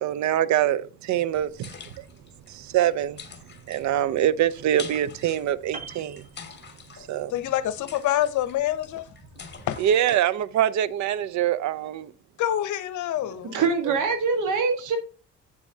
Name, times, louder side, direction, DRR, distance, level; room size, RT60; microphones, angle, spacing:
voice 1, 0.0-1.7 2.0-2.1 2.5-3.2 3.7-6.2 7.1-7.3 9.8-12.1, right 11 dB, 70° right, 0.6 m, -24 dB
sound 1, 1.3-10.0, left 6 dB, 35° left, 1.4 m, -46 dB
Piano, 5.7-7.2 7.5-7.7, right 4 dB, 25° right, 1.2 m, -43 dB
voice 2, 7.3-9.1 9.7-9.8 12.4-13.6, left 12 dB, 75° left, 0.7 m, -26 dB
voice 3, 13.5-15.0, right 5 dB, 85° right, 1.6 m, -24 dB
7.6 x 7.0 x 2.7 m
cardioid pair, 90°, 30 cm